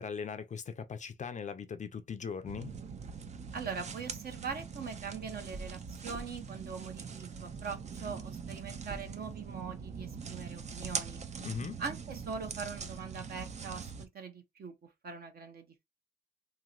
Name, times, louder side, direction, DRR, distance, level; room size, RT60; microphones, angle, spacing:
voice 1, 0.0-2.7 11.4-11.8, left 6 dB, 40° left, 0.5 m, -39 dB
sound 1, 2.4-14.1, right 5 dB, 35° right, 0.6 m, -42 dB
voice 2, 3.5-11.2 11.8-14.7 15.0-15.8, right 5 dB, 50° right, 1.0 m, -42 dB
2.9 x 2.9 x 2.4 m
cardioid pair, 90°, 20 cm